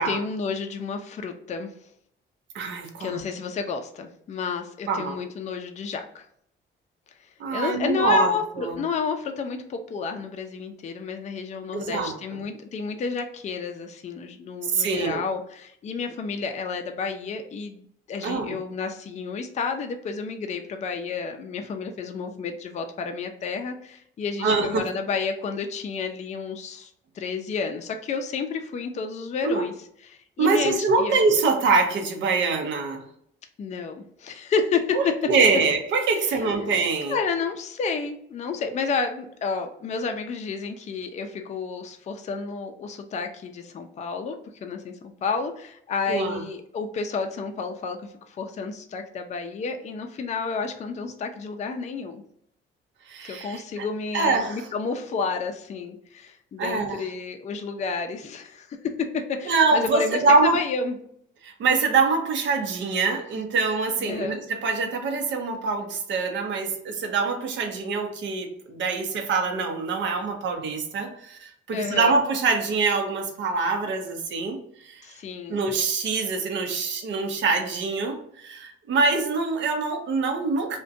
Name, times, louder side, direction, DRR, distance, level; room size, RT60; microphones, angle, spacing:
voice 1, 0.0-1.7 3.0-6.2 7.5-26.9 27.2-29.7 30.0-31.2 33.6-35.0 36.2-36.6 37.1-44.4 44.6-44.9 45.2-48.0 48.3-52.2 53.2-61.0 64.0-64.4 71.7-72.1 75.0-75.6, left 5 dB, 35° left, 5 dB, 0.4 m, -30 dB
voice 2, 2.5-3.2 4.9-5.2 7.4-8.8 11.7-12.4 14.7-15.2 18.2-18.6 24.4-24.9 29.4-29.6 30.4-33.0 34.9-37.2 46.1-46.4 53.1-53.9 54.1-54.7 56.6-57.1 59.5-60.6 61.4-75.1 75.5-80.8, right 4 dB, 70° right, 5 dB, 0.6 m, -24 dB
2.5 x 2.2 x 2.5 m, 0.68 s
cardioid pair, 90°, 20 cm